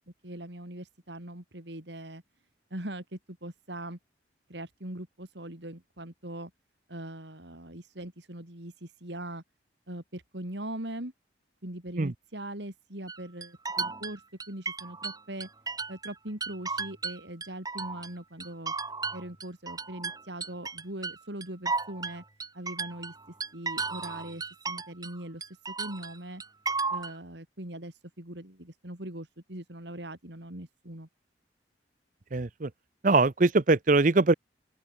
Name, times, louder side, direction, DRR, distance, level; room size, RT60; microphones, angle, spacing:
voice 1, 0.2-2.2 2.7-4.0 4.5-6.5 6.9-9.4 9.9-11.1 11.6-15.5 15.9-18.7 19.1-22.2 22.5-23.1 23.5-26.4 26.9-31.1, right 1 dB, 70° right, 4.1 m, -41 dB
sound 1, 13.1-16.1 16.4-18.1 18.4-25.2 25.4-27.1, right 4 dB, 20° right, 4.4 m, -34 dB
voice 2, 32.3-32.7 33.0-34.3, right 3 dB, 45° right, 0.7 m, -22 dB
open air
head